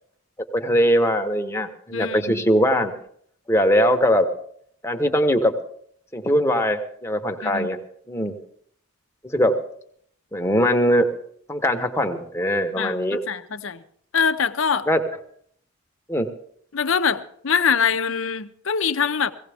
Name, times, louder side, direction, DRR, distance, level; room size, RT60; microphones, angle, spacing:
voice 1, 0.5-2.9 3.5-4.3 4.8-5.5 6.1-7.8 8.1-8.3 9.2-9.5 10.3-11.1 11.5-13.2 14.9-15.0 16.1-16.3, equal, 15° left, 5 dB, 1.0 m, -21 dB
voice 2, 1.9-2.4 7.4-7.7 12.8-13.8 14.1-14.9 16.7-19.3, left 6 dB, 65° left, 11 dB, 0.7 m, -23 dB
17.0 x 16.5 x 3.5 m, 0.64 s
head